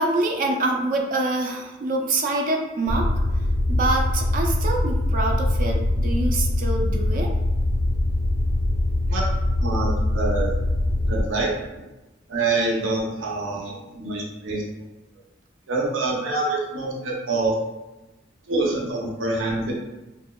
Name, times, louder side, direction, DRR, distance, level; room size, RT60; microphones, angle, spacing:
voice 1, 0.0-3.1 3.7-7.3, right 2 dB, 45° right, 2 dB, 0.3 m, -25 dB
sound 1, 2.9-11.2, left 1 dB, 30° left, 0.4 m, -23 dB
voice 2, 9.6-10.5 11.1-11.5 12.3-14.6 15.7-17.5 18.5-19.7, right 3 dB, 90° right, -2 dB, 0.6 m, -26 dB
2.7 x 2.1 x 2.2 m, 1.0 s
head